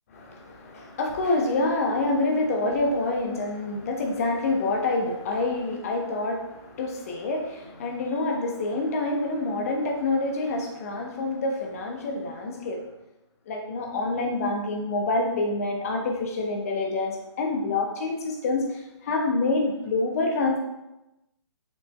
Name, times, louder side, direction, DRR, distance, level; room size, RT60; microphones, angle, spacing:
voice 1, 0.1-12.8 13.5-20.6, left 2 dB, 30° left, 1 dB, 1.2 m, -27 dB
6.8 x 5.8 x 3.4 m, 0.94 s
figure-of-eight pair, 135°, 15 cm